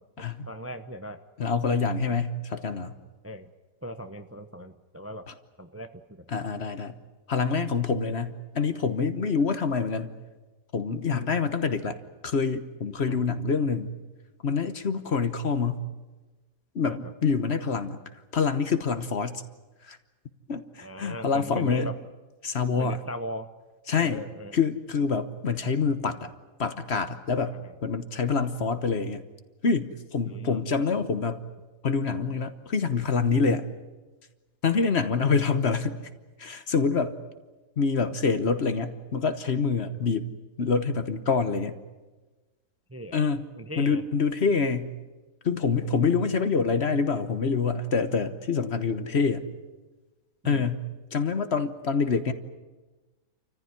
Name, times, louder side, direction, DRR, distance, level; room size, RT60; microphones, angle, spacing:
voice 1, 0.0-1.2 3.2-3.5 3.8-5.3 5.6-6.3 11.1-11.4 13.1-13.2 16.8-17.0 20.8-21.9 22.7-23.5 24.0-24.6 27.5-27.7 30.2-30.7 34.7-34.9 35.3-35.4 39.9-40.1 42.9-43.2 43.6-44.0 45.7-46.2 50.4-50.7, equal, 15° right, 7 dB, 0.7 m, -39 dB
voice 2, 1.4-3.0 6.3-6.9 7.3-10.1 10.7-12.0 12.2-14.0 14.4-15.8 16.7-18.0 18.3-19.4 19.9-20.0 20.5-21.9 22.4-23.0 23.9-24.2 24.5-26.3 26.6-27.5 27.8-29.2 29.6-31.5 31.8-33.7 34.6-36.0 36.4-37.2 37.8-40.3 40.6-41.8 43.1-43.4 43.8-44.9 45.4-49.5 50.4-52.3, left 5 dB, 50° left, 10 dB, 1.3 m, -26 dB
29.0 x 14.5 x 9.7 m, 1.2 s
omnidirectional pair, 1.6 m